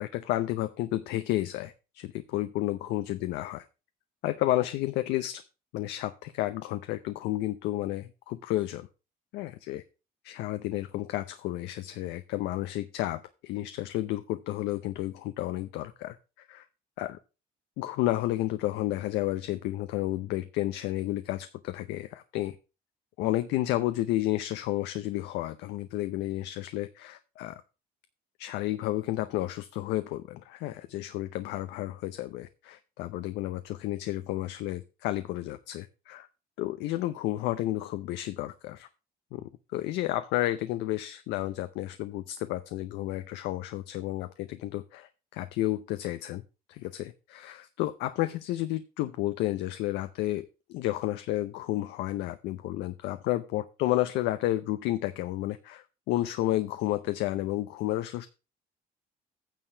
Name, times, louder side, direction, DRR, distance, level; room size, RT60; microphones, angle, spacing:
voice 1, 0.0-3.6 4.2-5.4 5.7-8.9 9.3-9.8 10.2-16.7 17.0-17.2 17.8-22.6 23.2-27.6 28.4-36.3 36.6-38.9 39.3-46.4 46.7-58.3, left 15 dB, 90° left, 10 dB, 0.7 m, -31 dB
9.2 x 4.7 x 6.8 m, 0.31 s
cardioid pair, 110°, 17 cm